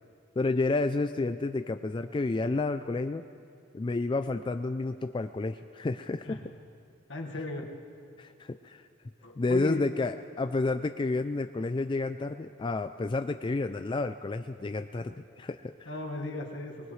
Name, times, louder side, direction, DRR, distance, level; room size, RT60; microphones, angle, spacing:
voice 1, 0.4-3.3 3.7-6.4 8.2-8.8 9.4-15.9, left 3 dB, 25° left, 8 dB, 0.3 m, -30 dB
voice 2, 7.1-7.7 9.2-9.8 15.8-16.9, left 1 dB, 70° left, 2 dB, 1.6 m, -36 dB
21.5 x 20.0 x 3.2 m, 2.4 s
head